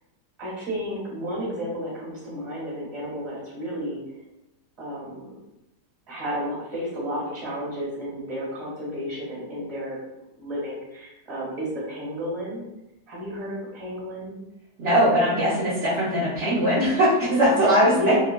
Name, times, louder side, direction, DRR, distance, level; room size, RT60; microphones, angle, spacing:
voice 1, 0.4-4.0 4.8-5.4 6.1-12.6 13.1-14.4 17.6-18.1, equal, 25° right, -7 dB, 1.3 m, -32 dB
voice 2, 14.8-18.1, equal, 55° right, -9 dB, 1.0 m, -20 dB
3.6 x 2.2 x 2.2 m, 0.95 s
omnidirectional pair, 1.8 m